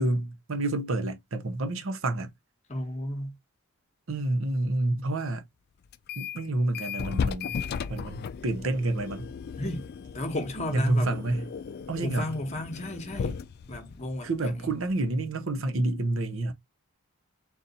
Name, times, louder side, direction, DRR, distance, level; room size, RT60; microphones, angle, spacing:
voice 1, 0.0-2.3 4.1-5.4 6.2-7.6 7.9-9.3 10.7-11.5 11.9-12.4 14.2-16.5, right 2 dB, 65° right, 0.7 m, -28 dB
voice 2, 2.7-3.4 9.6-9.9 10.1-11.1 12.0-13.4 13.7-14.7, left 1 dB, 30° left, 1.0 m, -33 dB
sound 1, 5.9-6.4 6.7-15.2, left 6 dB, 50° left, 0.3 m, -36 dB
4.0 x 2.3 x 3.9 m
head